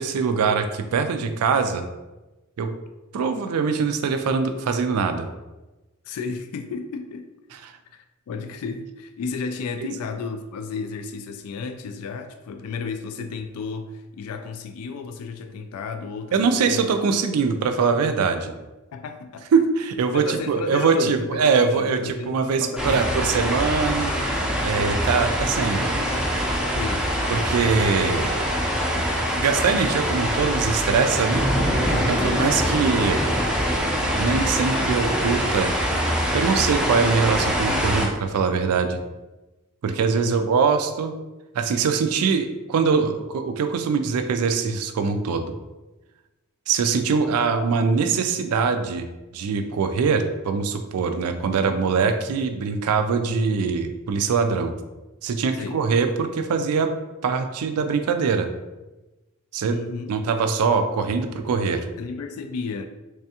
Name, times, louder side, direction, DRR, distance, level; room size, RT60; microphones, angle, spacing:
voice 1, 0.0-1.8 2.6-2.7 3.1-5.3 9.8-9.9 16.3-18.5 19.5-24.1 24.6-25.9 26.5-26.6 27.3-28.4 29.0-29.1 29.3-31.4 31.9-33.3 34.1-35.8 36.3-39.0 39.8-41.1 41.5-45.5 46.7-49.1 49.3-54.7 55.2-56.9 57.2-58.5 59.5-59.8 60.1-61.9, right 5 dB, 85° right, 7 dB, 0.4 m, -23 dB
voice 2, 6.0-7.3 7.9-16.9 18.9-19.5 20.1-23.3 26.7-27.1 32.2-32.6 40.1-40.4 55.5-55.8 59.7-60.2 62.0-62.9, left 4 dB, 80° left, 7 dB, 0.3 m, -33 dB
sound 1, 22.8-38.1, equal, 5° right, 0.4 m, -24 dB
3.4 x 3.2 x 2.8 m, 1.1 s
head